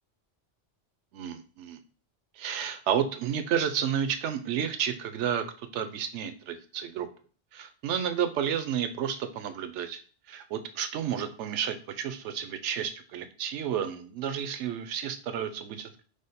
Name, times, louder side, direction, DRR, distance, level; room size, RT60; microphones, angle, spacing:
voice 1, 1.1-1.8 2.4-5.5 5.7-7.1 7.5-10.0 10.3-16.0, right 8 dB, 80° right, 9 dB, 0.9 m, -31 dB
4.9 x 2.0 x 4.0 m, 0.40 s
omnidirectional pair, 1.2 m